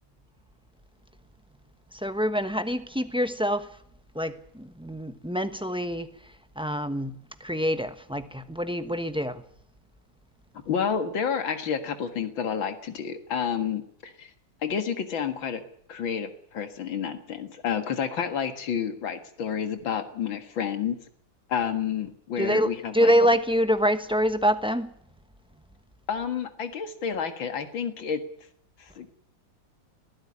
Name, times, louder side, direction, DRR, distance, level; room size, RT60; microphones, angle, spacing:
voice 1, 2.0-3.7 4.1-6.1 6.6-9.4 22.4-24.9, equal, 5° right, 10 dB, 0.7 m, -26 dB
voice 2, 10.7-14.3 14.6-15.6 15.9-21.0 21.5-23.1 26.1-28.2 28.8-29.1, left 7 dB, 85° left, 8 dB, 2.6 m, -30 dB
21.5 x 15.0 x 9.9 m, 0.65 s
omnidirectional pair, 2.1 m